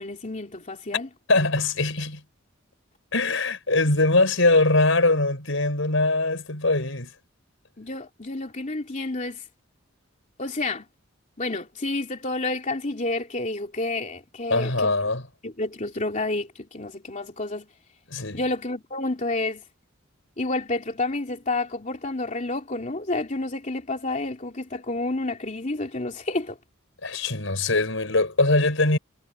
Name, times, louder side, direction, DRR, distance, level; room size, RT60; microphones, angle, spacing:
voice 1, 0.0-1.1 7.8-9.5 10.4-10.8 11.4-14.9 15.4-17.7 18.3-19.6 20.4-26.6, left 2 dB, 40° left, 2.9 m, -29 dB
voice 2, 1.3-2.2 3.1-7.1 14.5-15.2 18.1-18.4 27.0-29.0, left 2 dB, 70° left, 6.0 m, -22 dB
head